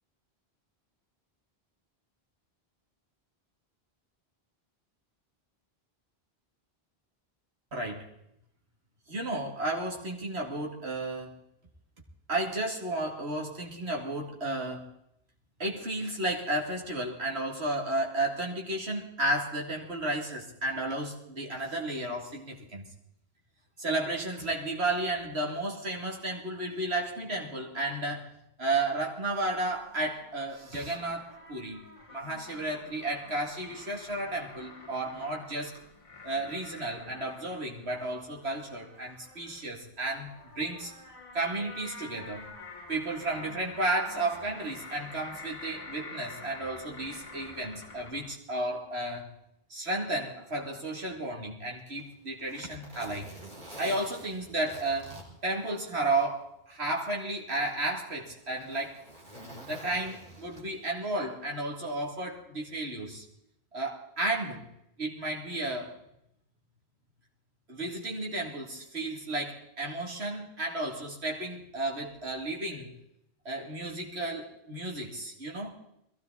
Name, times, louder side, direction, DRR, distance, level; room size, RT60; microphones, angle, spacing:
voice 1, 7.7-8.0 9.1-11.3 12.3-14.9 15.6-22.9 23.8-28.3 28.6-31.8 32.1-35.7 36.2-40.9 41.3-42.4 42.9-49.3 49.7-53.3 53.8-55.1 55.4-59.0 59.7-63.3 63.7-64.7 65.0-65.9 67.7-72.9 73.4-75.7, right 2 dB, 80° right, 0 dB, 2.8 m, -33 dB
sound 1, 29.4-48.4, left 3 dB, 30° left, 1.5 m, -48 dB
Zipper (clothing), 51.8-56.3 56.6-56.7 57.5-61.0 62.2-62.4, right 1 dB, 50° right, 4.1 m, -48 dB
21.5 x 16.0 x 4.0 m, 0.78 s
omnidirectional pair, 1.1 m